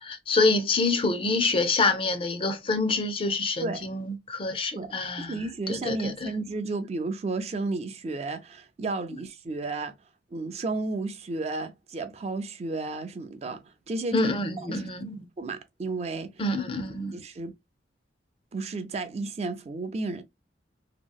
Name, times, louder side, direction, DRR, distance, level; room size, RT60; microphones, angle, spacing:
voice 1, 0.0-6.4 14.1-15.3 16.4-17.2, left 3 dB, 30° left, 0.4 m, -27 dB
voice 2, 5.3-9.9 10.3-14.3 14.7-14.9 15.4-16.3 17.1-17.5 18.5-20.2, right 3 dB, 35° right, 0.4 m, -32 dB
2.8 x 2.7 x 2.2 m
head